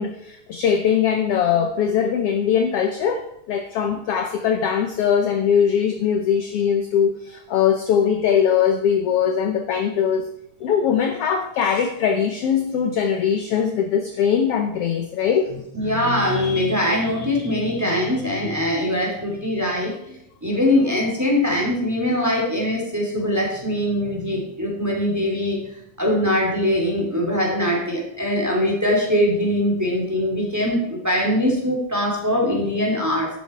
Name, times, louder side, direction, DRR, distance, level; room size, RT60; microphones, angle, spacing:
voice 1, 0.0-10.3 10.6-15.5, left 7 dB, 70° left, 6 dB, 1.5 m, -21 dB
voice 2, 15.7-20.2 20.4-25.6 26.0-33.3, left 1 dB, 5° right, -2 dB, 2.9 m, -22 dB
11.5 x 9.1 x 4.6 m, 0.78 s
omnidirectional pair, 3.4 m